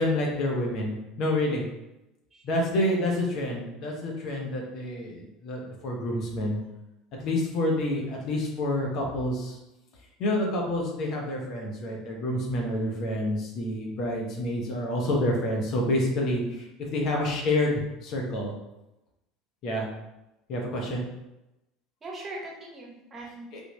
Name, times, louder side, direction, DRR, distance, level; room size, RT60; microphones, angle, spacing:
voice 1, 0.0-1.7 2.4-6.6 7.2-9.6 10.2-16.4 16.8-18.5 19.6-19.9 20.5-21.0 23.5-23.6, left 1 dB, 55° left, -1 dB, 0.9 m, -28 dB
voice 2, 22.0-23.5, right 2 dB, 30° right, -2 dB, 1.1 m, -40 dB
3.5 x 2.5 x 3.1 m, 0.93 s
hypercardioid pair, 75°, 0 cm